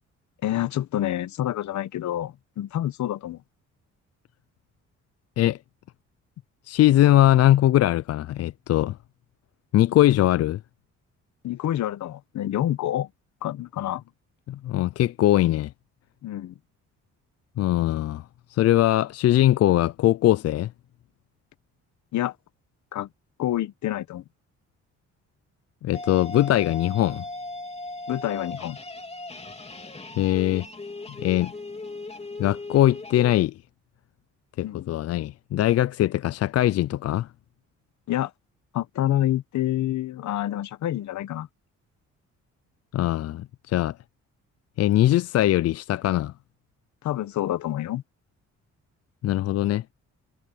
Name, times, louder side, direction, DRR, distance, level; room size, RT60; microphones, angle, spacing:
voice 1, 0.4-3.4 11.4-13.1 13.4-14.0 16.2-16.5 22.1-22.3 22.9-23.1 23.4-24.2 28.1-28.8 34.6-34.9 38.1-38.3 38.7-41.5 47.0-48.0, left 13 dB, 70° left, 1.1 m, -27 dB
voice 2, 6.7-9.0 9.7-10.6 14.5-15.7 17.6-18.2 18.5-20.7 25.8-27.2 30.2-30.7 31.2-31.5 32.4-33.5 34.6-37.3 42.9-44.0 44.8-46.3 49.2-49.8, left 14 dB, 55° left, 0.4 m, -21 dB
sound 1, 25.9-33.4, left 2 dB, 20° left, 3.0 m, -38 dB
cardioid pair, 90°, 30 cm